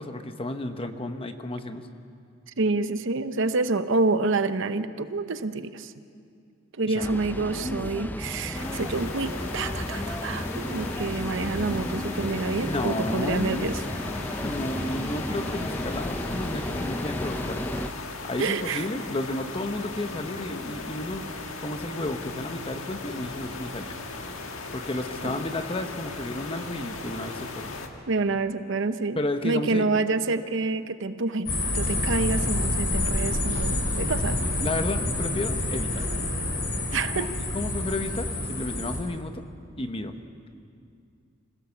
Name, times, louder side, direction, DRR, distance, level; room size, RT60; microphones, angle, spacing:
voice 1, 0.0-1.9 6.8-7.2 12.6-13.6 14.4-17.7 18.2-21.3 21.6-24.0 24.7-27.7 29.2-29.9 34.6-36.0 36.9-39.4 39.8-40.2, left 2 dB, 30° left, 8 dB, 1.0 m, -32 dB
voice 2, 2.6-5.9 6.7-13.8 18.4-18.8 25.2-25.3 28.1-29.2 29.4-34.4 36.9-37.3, right 3 dB, 65° right, 11 dB, 0.8 m, -27 dB
sound 1, 7.0-17.9, left 1 dB, 10° left, 0.5 m, -33 dB
sound 2, 8.5-27.9, left 3 dB, 85° left, 1.7 m, -37 dB
sound 3, 31.5-39.0, left 1 dB, 55° left, 4.2 m, -28 dB
26.0 x 16.5 x 7.2 m, 2.3 s
head